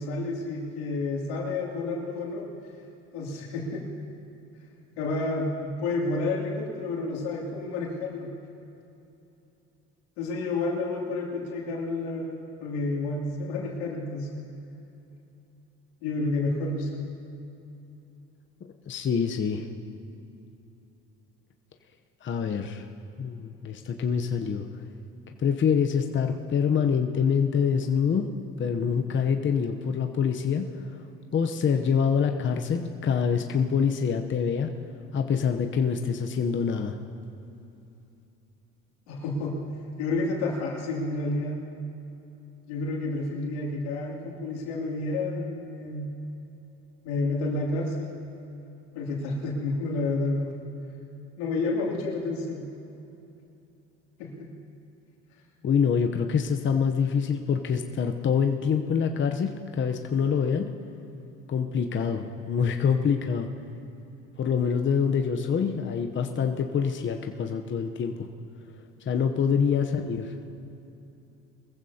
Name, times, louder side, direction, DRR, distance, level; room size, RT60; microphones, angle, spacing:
voice 1, 0.0-2.5 3.1-3.9 5.0-8.3 10.2-14.5 16.0-17.1 39.1-39.6 40.0-41.6 42.7-46.1 47.0-48.1 48.9-50.6 51.4-52.7 54.2-54.5 69.5-69.9, left 2 dB, 90° left, -3 dB, 2.9 m, -30 dB
voice 2, 18.9-19.7 22.2-22.8 23.2-24.7 25.4-28.3 28.6-31.0 31.3-34.7 35.1-36.9 55.6-60.7 61.5-63.5 64.4-68.3 69.1-70.3, left 6 dB, 35° left, 4 dB, 0.9 m, -25 dB
22.0 x 15.0 x 2.9 m, 2.9 s
supercardioid pair, 85°, 33 cm